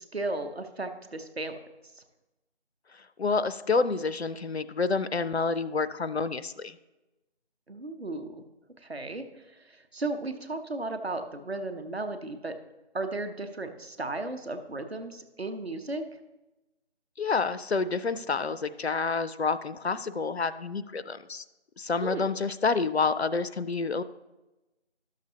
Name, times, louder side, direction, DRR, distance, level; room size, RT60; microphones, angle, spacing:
voice 1, 0.0-1.6 7.7-8.4 8.8-12.5 12.9-16.0 22.0-22.3, right 2 dB, 65° right, 8 dB, 0.8 m, -35 dB
voice 2, 3.2-6.8 17.2-21.4 21.8-24.0, left 4 dB, 70° left, 14 dB, 0.5 m, -28 dB
11.5 x 6.6 x 2.8 m, 1.0 s
figure-of-eight pair, 175°, 34 cm